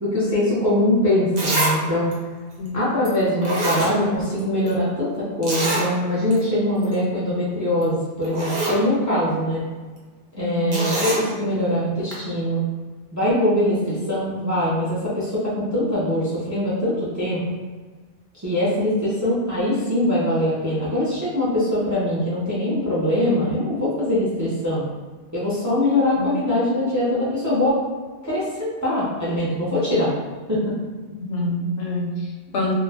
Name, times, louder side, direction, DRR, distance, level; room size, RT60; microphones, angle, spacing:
voice 1, 0.0-2.2 2.7-9.6 10.4-12.7 13.1-17.4 18.3-24.9 25.3-27.8 28.2-30.1 30.5-30.6, left 1 dB, 25° right, -8 dB, 0.4 m, -22 dB
Zipper (clothing), 0.8-0.9 1.4-1.8 2.1-2.2 3.0-3.1 3.4-4.4 4.7-4.8 5.4-5.9 6.3-6.4 6.7-6.9 7.8-7.9 8.2-8.8 10.7-11.2 12.1-12.2, right 1 dB, 50° right, 0.7 m, -24 dB
voice 2, 10.3-10.8 26.2-26.3 31.2-32.7, left 2 dB, 70° left, -1 dB, 0.9 m, -26 dB
2.4 x 2.1 x 3.4 m, 1.4 s
omnidirectional pair, 1.2 m